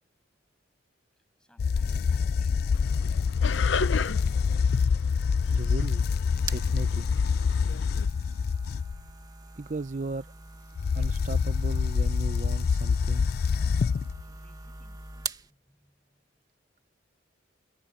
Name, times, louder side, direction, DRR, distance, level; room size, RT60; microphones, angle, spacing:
voice 1, 1.4-4.5 14.0-16.4, equal, 5° left, 7.4 m, -64 dB
sound 1, 1.6-9.0 10.8-14.2, left 5 dB, 55° left, 0.3 m, -26 dB
sound 2, 2.7-8.1, left 5 dB, 80° left, 0.8 m, -36 dB
voice 2, 5.5-7.1 9.6-10.3 10.9-13.3, right 3 dB, 40° right, 0.6 m, -36 dB
sound 3, 5.9-15.5, right 3 dB, 20° right, 1.6 m, -43 dB
head